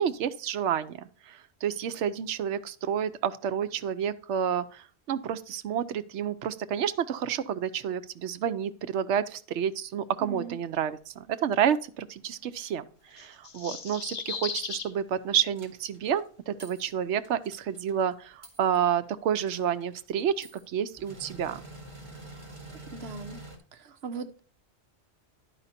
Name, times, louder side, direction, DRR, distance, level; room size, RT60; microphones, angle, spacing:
voice 1, 0.0-12.8 13.1-21.6, right 8 dB, 85° right, 0.9 m, -29 dB
voice 2, 10.2-10.6 22.9-23.4 23.7-24.4, right 4 dB, 65° right, 1.0 m, -39 dB
sound 1, 13.2-14.9, left 6 dB, 55° left, 0.9 m, -36 dB
sound 2, 15.6-16.2 16.6-16.9 17.2-18.0 18.4-18.8 19.0-19.1 19.5-20.6 20.9-23.6, right 2 dB, 25° right, 1.8 m, -46 dB
11.0 x 5.0 x 4.1 m
omnidirectional pair, 1.2 m